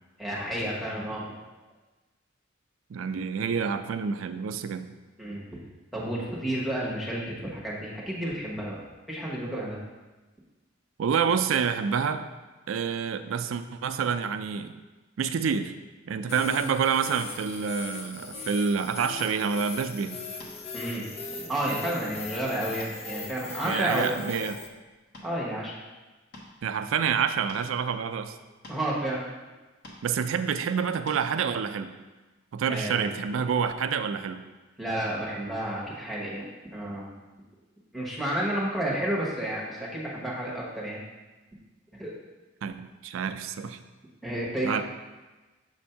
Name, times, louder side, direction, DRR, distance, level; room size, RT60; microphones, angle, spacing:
voice 1, 0.2-1.3 5.2-5.4 5.9-8.8 9.1-9.8 20.7-24.2 25.2-25.8 28.7-29.3 32.7-33.1 34.8-36.5 36.7-37.1 37.9-41.0 42.0-42.1 44.2-44.8, right 1 dB, ahead, -6 dB, 1.1 m, -31 dB
voice 2, 2.9-4.9 11.0-12.3 12.7-14.7 15.2-15.7 16.1-20.2 23.6-24.6 26.6-28.4 30.0-31.9 32.5-34.4 42.6-43.8 44.6-44.8, right 6 dB, 75° right, 10 dB, 0.4 m, -28 dB
sound 1, 16.3-24.7, left 4 dB, 30° left, 0.4 m, -39 dB
sound 2, 19.2-19.4 20.4-20.7 21.3-21.7 22.2-22.3 22.8-23.0 23.7-24.3 24.8-25.3 26.3-26.5 27.5-27.7 28.6-28.8 29.8-30.0 31.1-31.2, left 1 dB, 55° left, 1.2 m, -46 dB
7.3 x 2.6 x 5.6 m, 1.2 s
head